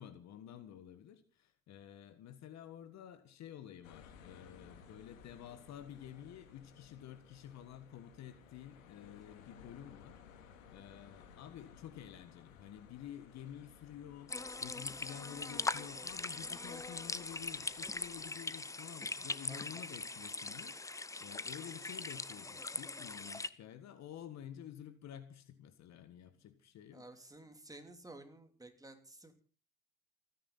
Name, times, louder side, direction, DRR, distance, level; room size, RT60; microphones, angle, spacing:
voice 1, 0.0-27.0, left 10 dB, 40° left, 1.6 m, -51 dB
sound 1, 3.8-18.2, left 7 dB, 70° left, 3.1 m, -59 dB
sound 2, 14.3-23.5, left 3 dB, 10° left, 0.8 m, -41 dB
voice 2, 19.5-19.8 26.9-29.3, right 2 dB, 10° right, 3.0 m, -53 dB
29.0 x 10.0 x 4.1 m
hypercardioid pair, 85°, 40 cm